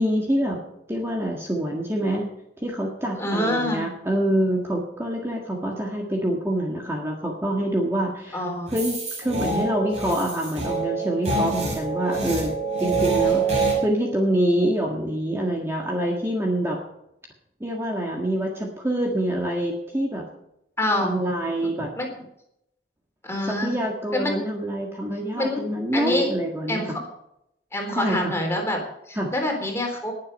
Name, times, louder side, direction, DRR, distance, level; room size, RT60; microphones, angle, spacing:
voice 1, 0.0-2.3 2.6-12.5 12.8-16.8 17.6-20.3 21.0-21.9 23.5-26.8 27.9-28.3 29.2-29.3, right 1 dB, 15° right, -1 dB, 1.7 m, -26 dB
voice 2, 3.2-3.8 8.3-8.7 20.8-21.1 22.0-22.1 23.2-23.8 24.1-24.4 25.4-25.7 25.9-26.3 26.7-27.0 27.7-28.8 29.1-30.1, left 1 dB, 15° left, 1 dB, 3.7 m, -26 dB
sound 1, 8.7-13.8, right 3 dB, 40° right, 6.1 m, -25 dB
19.5 x 7.7 x 5.4 m, 0.80 s
head